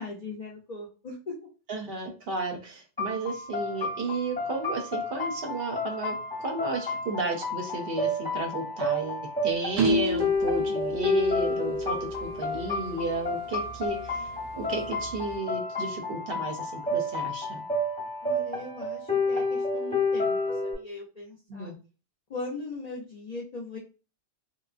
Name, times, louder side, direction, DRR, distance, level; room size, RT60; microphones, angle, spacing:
voice 1, 0.0-1.3 18.2-21.7 22.3-23.8, left 3 dB, 55° left, -3 dB, 0.4 m, -39 dB
voice 2, 1.7-17.6 21.5-21.7, right 3 dB, 60° right, 3 dB, 0.7 m, -33 dB
sound 1, 3.0-20.7, left 2 dB, 10° left, 0.7 m, -30 dB
sound 2, 9.8-10.5 12.2-12.3 12.6-12.7 13.1-13.2 13.7-13.8 14.6-15.4, equal, 85° right, 1.0 m, -25 dB
3.0 x 2.0 x 2.4 m, 0.33 s
omnidirectional pair, 1.2 m